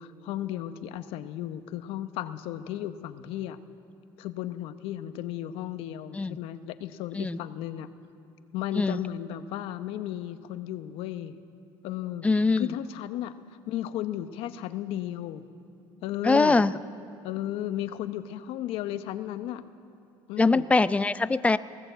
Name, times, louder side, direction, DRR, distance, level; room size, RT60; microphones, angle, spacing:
voice 1, 0.0-3.6 4.2-7.9 8.5-11.4 11.8-12.3 12.6-13.3 13.7-15.4 16.0-16.6 17.2-19.6 20.3-20.7, left 12 dB, 75° left, 10 dB, 1.0 m, -34 dB
voice 2, 12.2-12.7 16.2-16.7 20.4-21.6, left 3 dB, 15° left, 14 dB, 0.6 m, -22 dB
19.0 x 18.5 x 8.1 m, 2.5 s
cardioid pair, 115°, 10 cm